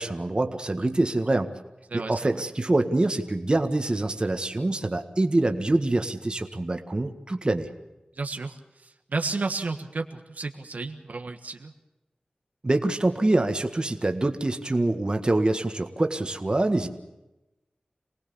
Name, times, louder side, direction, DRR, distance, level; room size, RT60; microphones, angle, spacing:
voice 1, 0.0-1.5 1.9-7.7 12.6-16.9, right 2 dB, 35° right, 6 dB, 1.8 m, -25 dB
voice 2, 1.9-2.3 8.2-8.6 9.1-11.7, right 3 dB, 70° right, 5 dB, 1.5 m, -32 dB
27.5 x 19.0 x 7.1 m, 0.97 s
wide cardioid pair, 80°, 3 cm